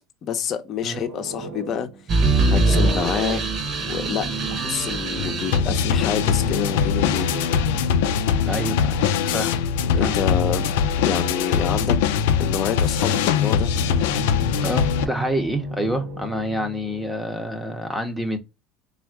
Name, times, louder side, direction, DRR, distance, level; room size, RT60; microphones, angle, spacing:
voice 1, 0.2-1.9 2.5-3.4 3.9-7.5 9.9-12.0 12.4-13.7, left 8 dB, 45° left, 0.7 m, -28 dB
sound 1, 0.9-2.1 3.3-9.4 12.9-17.1, right 2 dB, 80° right, 1.0 m, -36 dB
sound 2, 2.1-5.7, right 3 dB, 40° right, 1.0 m, -22 dB
sound 3, 5.2-15.0, left 7 dB, 80° left, 0.4 m, -22 dB
voice 2, 8.4-9.1 9.3-9.5 10.0-10.2 14.6-18.4, equal, 5° right, 0.8 m, -27 dB
3.4 x 2.5 x 4.5 m
supercardioid pair, 115°, 0 cm